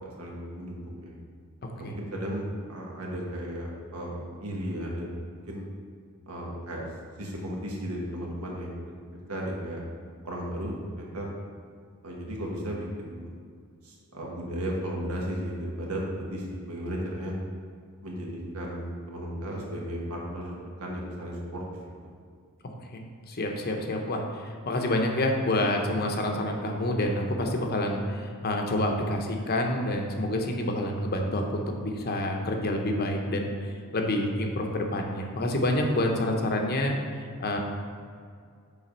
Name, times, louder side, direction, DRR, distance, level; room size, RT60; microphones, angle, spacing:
voice 1, 0.0-1.1 1.8-5.2 5.5-5.6 6.3-6.9 7.2-8.9 9.3-9.8 10.2-11.3 12.0-13.3 13.8-17.3 18.0-21.6, equal, 90° right, -2 dB, 1.4 m, -35 dB
voice 2, 1.6-1.9 22.8-23.0 23.3-37.6, left 1 dB, 45° left, 2 dB, 0.8 m, -28 dB
7.3 x 3.5 x 5.3 m, 2.2 s
head